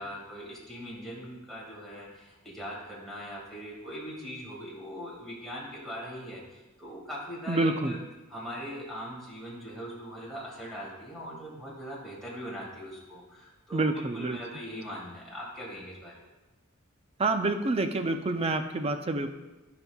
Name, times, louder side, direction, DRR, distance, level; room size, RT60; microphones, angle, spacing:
voice 1, 0.0-8.0 8.3-16.2, equal, ahead, -6 dB, 2.1 m, -41 dB
voice 2, 7.5-8.0 13.7-14.4 17.2-19.3, right 2 dB, 30° right, 8 dB, 0.5 m, -27 dB
15.0 x 5.3 x 2.3 m, 1.1 s
head